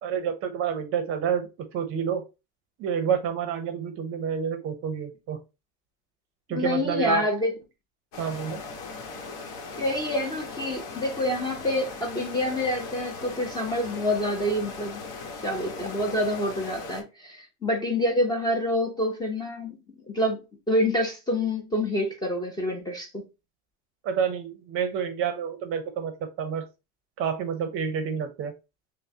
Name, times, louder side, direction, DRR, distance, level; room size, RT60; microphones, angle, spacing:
voice 1, 0.0-2.2 2.8-5.4 6.5-7.2 8.2-8.6 24.0-26.1 26.4-26.6 27.2-28.5, right 7 dB, 35° right, 0.6 m, -28 dB
voice 2, 6.5-7.5 9.8-15.0 15.4-19.8 20.1-20.4 20.7-23.2, left 1 dB, 10° left, 0.5 m, -27 dB
sound 1, 8.1-17.0, left 4 dB, 65° left, 1.1 m, -38 dB
5.4 x 2.1 x 2.7 m
cardioid pair, 160°, 36 cm